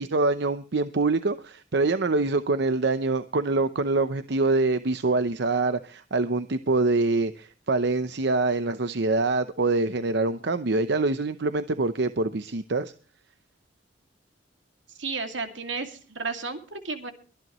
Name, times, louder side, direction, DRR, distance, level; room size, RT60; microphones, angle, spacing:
voice 1, 0.0-12.9, right 3 dB, 65° right, 11 dB, 0.8 m, -25 dB
voice 2, 15.0-17.1, right 4 dB, 90° right, 6 dB, 2.5 m, -33 dB
23.5 x 10.5 x 3.1 m, 0.37 s
head